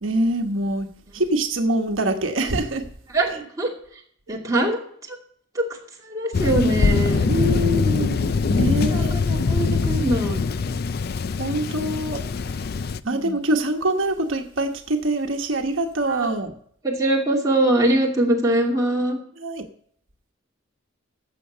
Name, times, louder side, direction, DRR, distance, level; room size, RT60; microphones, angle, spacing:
voice 1, 0.0-0.9 1.1-2.9 3.3-3.4 4.3-4.4 7.3-9.1 11.4-12.2 13.1-16.5 19.4-19.6, right 1 dB, 80° right, 4 dB, 1.2 m, -24 dB
voice 2, 3.1-3.7 4.3-4.8 5.1-5.2 5.5-5.6 6.1-7.6 8.9-10.9 13.0-13.4 16.1-16.3 16.8-19.2, right 1 dB, 15° right, -3 dB, 2.6 m, -23 dB
Thunder, 6.3-13.0, left 4 dB, 50° left, 0.4 m, -22 dB
12.0 x 7.7 x 6.8 m, 0.63 s
head